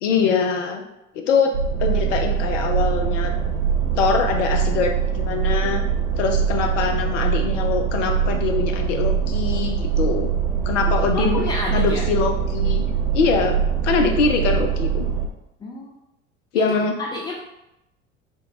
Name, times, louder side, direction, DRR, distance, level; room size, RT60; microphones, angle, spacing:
voice 1, 0.0-0.8 1.2-1.5 1.8-3.3 4.0-5.8 6.2-10.3 10.7-11.4 11.7-12.8 13.1-13.6 13.8-15.1 16.5-16.9, left 5 dB, 70° left, 4 dB, 0.5 m, -23 dB
sound 1, 1.5-15.2, right 7 dB, 65° right, 0.8 m, -23 dB
voice 2, 11.1-12.0 15.6-15.9 16.6-17.4, left 2 dB, 10° left, -2 dB, 0.3 m, -30 dB
3.6 x 2.2 x 3.9 m, 0.86 s
figure-of-eight pair, 65°, 38 cm